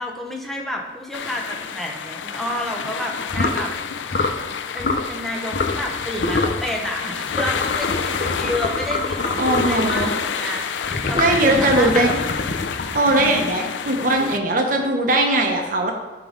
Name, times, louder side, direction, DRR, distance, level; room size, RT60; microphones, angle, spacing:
voice 1, 0.0-3.7 4.7-12.2 13.0-13.5, left 1 dB, ahead, -1 dB, 0.9 m, -30 dB
sound 1, 1.1-14.4, left 7 dB, 85° left, 0.5 m, -29 dB
sound 2, 3.3-3.6 4.1-4.4 4.8-5.1 5.5-5.9 6.2-6.6 7.3-10.2 10.8-13.7, left 3 dB, 50° left, 0.7 m, -25 dB
voice 2, 9.4-10.1 11.1-12.1 12.9-15.9, right 1 dB, 45° right, 2 dB, 1.1 m, -19 dB
10.5 x 3.9 x 5.1 m, 1.2 s
head